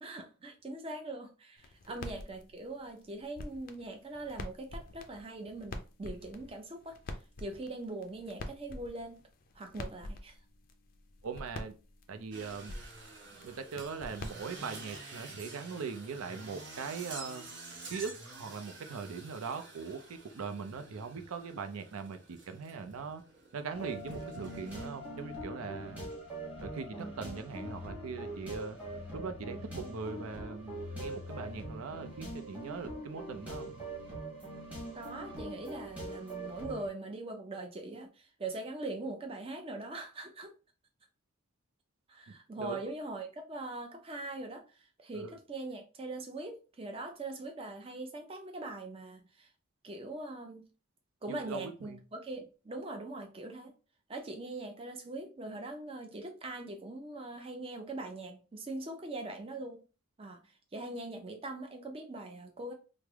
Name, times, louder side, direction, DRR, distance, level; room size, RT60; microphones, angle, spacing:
voice 1, 0.0-7.0 7.4-9.2 9.6-10.4 34.9-40.5 42.1-49.5 49.8-50.7 51.2-53.7 54.1-59.8 60.2-62.7, right 2 dB, 25° right, 4 dB, 0.5 m, -42 dB
sound 1, 1.6-15.0, left 2 dB, 40° left, 0.4 m, -47 dB
voice 2, 11.2-11.7 12.1-12.8 13.3-17.5 17.9-23.2 23.5-26.1 26.6-33.7 42.6-42.8 45.1-45.3 51.3-52.0, right 5 dB, 80° right, 9 dB, 0.5 m, -41 dB
sound 2, 12.3-24.9, right 3 dB, 55° right, 0.7 m, -49 dB
sound 3, 23.7-36.9, right 1 dB, 5° right, 1.1 m, -43 dB
3.2 x 2.0 x 3.4 m, 0.34 s
head